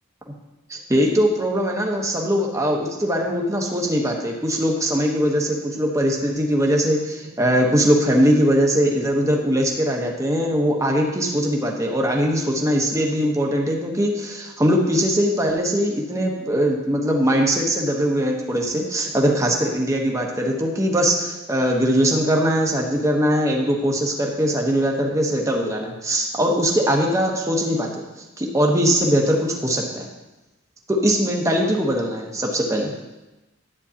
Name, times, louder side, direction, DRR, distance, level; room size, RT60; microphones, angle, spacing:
voice 1, 0.7-28.0 28.4-30.1 30.9-32.9, equal, 15° right, 0 dB, 1.1 m, -21 dB
11.0 x 8.6 x 2.9 m, 1.0 s
head